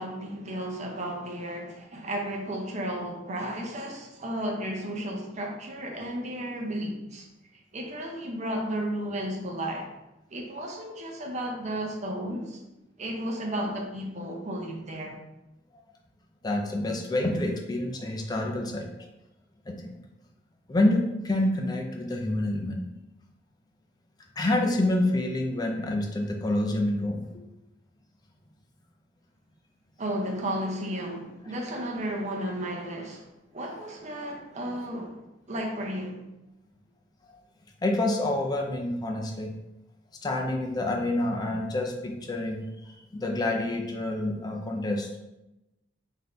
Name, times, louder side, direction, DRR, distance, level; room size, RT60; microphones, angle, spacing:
voice 1, 0.0-7.2 7.7-9.9 10.3-12.6 13.0-15.2 30.0-33.3 33.5-35.2 35.5-36.2, right 1 dB, 40° right, 1 dB, 0.7 m, -33 dB
voice 2, 16.4-18.9 19.7-20.0 20.7-22.8 24.4-27.3 37.8-39.6 40.2-45.2, left 1 dB, 20° left, 1 dB, 0.4 m, -28 dB
4.0 x 2.7 x 3.7 m, 0.94 s
head